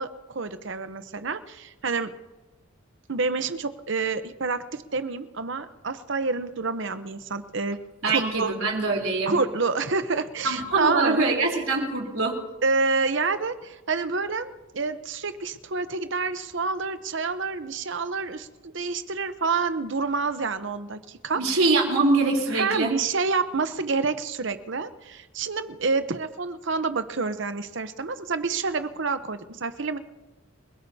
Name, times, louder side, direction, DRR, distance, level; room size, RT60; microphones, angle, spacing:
voice 1, 0.0-2.1 3.1-7.8 8.1-8.5 9.3-11.2 12.6-21.6 22.5-30.0, right 4 dB, 60° right, 11 dB, 0.9 m, -28 dB
voice 2, 8.0-9.3 10.4-12.4 21.4-22.9, right 3 dB, 85° right, 0 dB, 3.8 m, -23 dB
28.0 x 17.0 x 2.8 m, 1.1 s
head